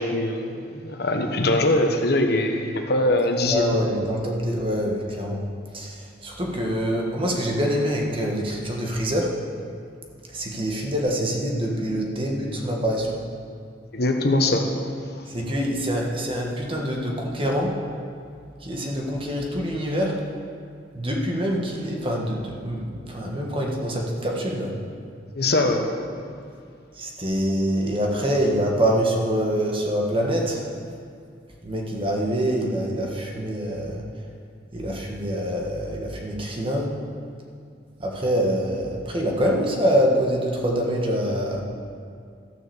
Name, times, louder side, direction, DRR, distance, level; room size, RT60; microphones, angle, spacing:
voice 1, 0.0-3.8 13.9-14.7 25.3-25.9, left 1 dB, 60° left, 4 dB, 1.1 m, -22 dB
voice 2, 3.4-5.4 5.7-9.3 10.3-13.2 15.3-17.7 18.6-20.2 20.9-24.7 26.9-30.7 31.6-34.0 34.7-36.9 38.0-41.6, equal, 30° right, -1 dB, 1.5 m, -25 dB
13.5 x 6.9 x 7.1 m, 2.3 s
head